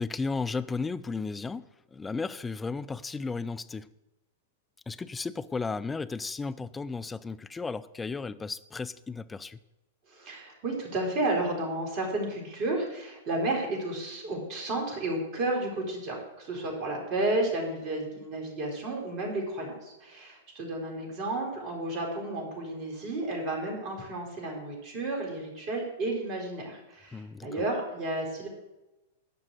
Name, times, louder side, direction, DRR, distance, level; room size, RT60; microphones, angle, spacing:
voice 1, 0.0-3.9 4.9-9.6 27.1-27.6, left 4 dB, 15° left, 14 dB, 0.5 m, -34 dB
voice 2, 10.1-28.5, right 2 dB, 40° right, 0 dB, 4.2 m, -32 dB
12.0 x 5.5 x 8.0 m, 0.99 s
figure-of-eight pair, 100°, 0 cm